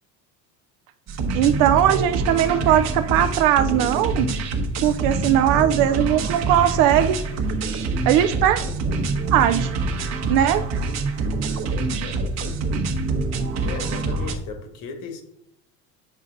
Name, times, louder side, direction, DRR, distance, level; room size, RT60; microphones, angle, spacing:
sound 1, 1.1-14.3, right 3 dB, 50° right, 1.0 m, -25 dB
voice 1, 1.3-4.3 4.8-7.2 8.1-8.6 9.3-9.7 10.3-10.7, right 11 dB, 75° right, 9 dB, 0.5 m, -19 dB
voice 2, 13.6-15.2, left 4 dB, 70° left, 6 dB, 1.5 m, -36 dB
7.5 x 5.6 x 3.8 m, 0.76 s
cardioid pair, 130°, 35 cm